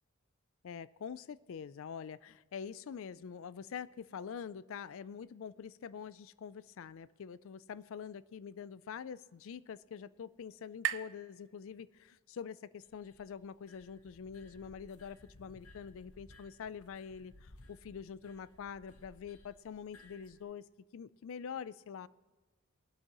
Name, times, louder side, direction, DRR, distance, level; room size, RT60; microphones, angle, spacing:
voice 1, 0.6-22.1, left 7 dB, 65° left, 18 dB, 0.4 m, -45 dB
sound 1, 8.5-12.3, right 11 dB, 60° right, 0.4 m, -44 dB
sound 2, 12.8-20.4, left 2 dB, 80° left, 0.9 m, -60 dB
20.0 x 12.0 x 3.0 m, 1.3 s
head